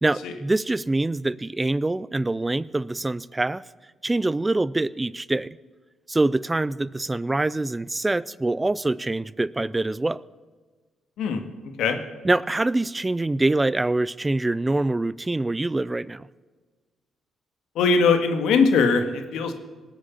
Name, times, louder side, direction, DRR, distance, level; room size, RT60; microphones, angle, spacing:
voice 1, 0.0-3.6 4.0-5.6 6.1-10.2 12.2-16.3, right 2 dB, 15° right, 19 dB, 0.4 m, -24 dB
voice 2, 17.8-19.5, left 4 dB, 80° left, 7 dB, 1.9 m, -20 dB
19.0 x 8.2 x 8.6 m, 1.4 s
cardioid pair, 90°, 0 cm